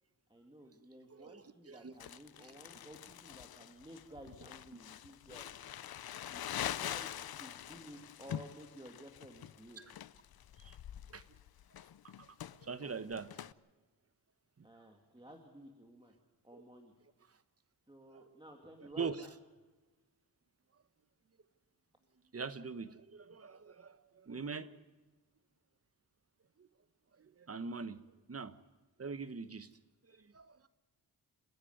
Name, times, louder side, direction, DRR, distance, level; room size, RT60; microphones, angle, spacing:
voice 1, 0.3-5.7 6.3-7.1 7.4-9.8 14.6-16.1 16.4-16.9 17.9-19.3, right 1 dB, 15° right, 2 dB, 2.3 m, -54 dB
voice 2, 1.1-1.9 2.4-2.5 4.7-4.8 9.8-9.9 10.6-10.8 11.1-11.2 12.2-12.3 12.6-13.5 14.6-14.7 18.8-19.3 22.3-24.8 26.6-26.7 27.2-28.0 28.3-28.6 29.0-29.7 30.1-30.6, right 5 dB, 40° right, 13 dB, 1.2 m, -43 dB
Crumpling crinkling, 2.0-13.5, left 11 dB, 70° left, 0.6 m, -45 dB
30.0 x 10.0 x 9.4 m, 1.2 s
wide cardioid pair, 85°, 38 cm